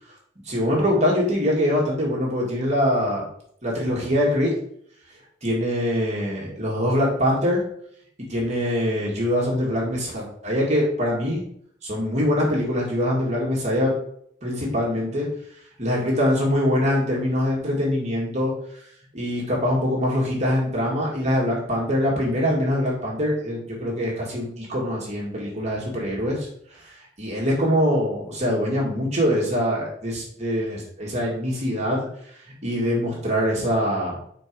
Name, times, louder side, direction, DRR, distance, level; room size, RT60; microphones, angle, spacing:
voice 1, 0.5-3.2 3.6-4.5 5.4-7.6 8.3-11.4 11.8-13.9 14.4-15.3 15.8-18.5 19.1-26.5 27.2-32.1 32.6-34.2, equal, 35° right, -4 dB, 1.9 m, -23 dB
4.6 x 4.5 x 4.6 m, 0.65 s
head